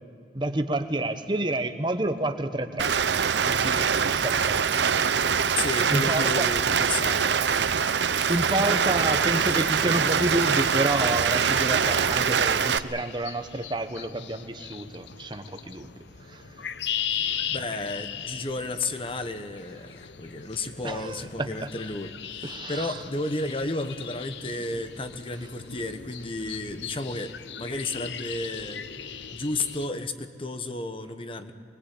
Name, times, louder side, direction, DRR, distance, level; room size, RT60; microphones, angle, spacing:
voice 1, 0.3-2.9 3.4-3.9 4.1-5.0 5.9-6.5 7.8-15.9 16.3-16.4 17.3-17.4 20.8-21.5 22.4-23.0, right 1 dB, 25° right, 7 dB, 1.2 m, -29 dB
Rain, 2.8-12.8, right 6 dB, 85° right, 0.7 m, -24 dB
voice 2, 5.5-7.4 17.5-28.8 29.3-31.5, left 2 dB, 30° left, 9 dB, 1.2 m, -32 dB
sound 1, 10.4-29.9, left 8 dB, 85° left, 0.8 m, -38 dB
24.5 x 21.5 x 8.5 m, 2.5 s
head